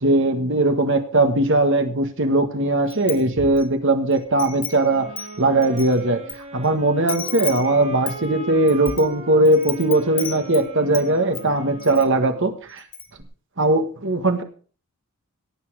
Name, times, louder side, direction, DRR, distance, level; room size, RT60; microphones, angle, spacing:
voice 1, 0.0-5.1 5.4-6.2 6.5-12.8 13.6-14.4, right 2 dB, 55° right, 6 dB, 1.7 m, -19 dB
Wind chime, 2.9-3.7 4.1-6.4 6.6-6.7 7.1-11.1 11.3-12.1 12.4-12.5 12.8-13.2, left 6 dB, 20° left, 1.8 m, -34 dB
sound 1, 4.8-12.7, right 2 dB, 30° right, 1.9 m, -39 dB
17.5 x 8.7 x 4.9 m, 0.39 s
head